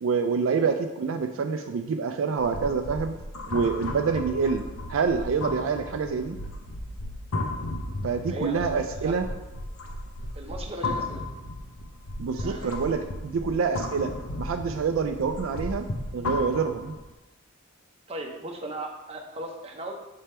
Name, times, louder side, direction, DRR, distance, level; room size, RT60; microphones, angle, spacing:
voice 1, 0.0-3.1 3.5-4.6 4.9-6.4 8.0-9.3 12.2-14.1 14.4-15.9 16.1-17.0, right 5 dB, 70° right, 6 dB, 0.4 m, -26 dB
sound 1, 2.4-17.1, left 2 dB, 90° left, 0.8 m, -35 dB
voice 2, 8.3-9.1 10.4-11.3 12.3-12.8 18.1-19.9, right 1 dB, 30° right, 1 dB, 0.8 m, -37 dB
7.5 x 3.4 x 4.3 m, 1.0 s
head